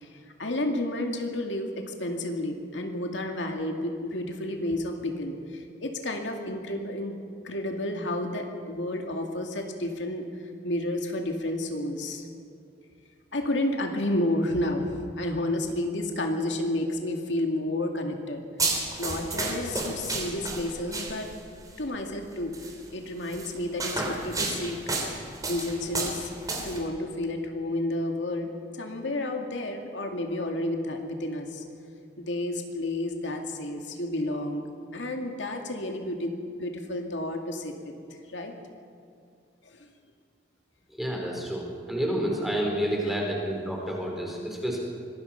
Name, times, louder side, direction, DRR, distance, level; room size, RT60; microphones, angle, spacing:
voice 1, 0.0-7.2 7.4-10.3 10.6-12.3 13.3-18.4 18.7-21.3 21.8-22.5 22.9-24.8 25.4-26.3 26.6-31.6 32.2-34.7 34.9-37.9 38.3-38.5 39.7-39.9 43.1-43.2, left 1 dB, 80° left, 3 dB, 2.3 m, -31 dB
sound 1, 18.6-21.5 22.5-22.7 23.3-26.8, right 3 dB, 20° right, 3.4 m, -31 dB
voice 2, 40.9-44.8, equal, ahead, -1 dB, 4.5 m, -29 dB
25.0 x 19.5 x 5.8 m, 2.5 s
head